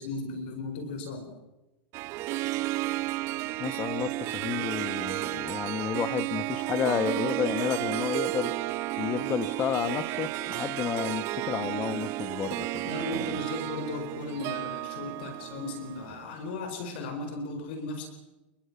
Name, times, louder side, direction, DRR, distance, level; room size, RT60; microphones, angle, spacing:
voice 1, 0.0-1.3 12.8-18.1, left 3 dB, 70° left, 7 dB, 4.4 m, -36 dB
Harp, 1.9-16.4, right 18 dB, 50° right, 0.9 m, -32 dB
voice 2, 3.6-8.5 9.0-13.4, left 8 dB, 35° left, 13 dB, 1.6 m, -31 dB
29.5 x 22.0 x 6.0 m, 1.0 s
hypercardioid pair, 105°, 6 cm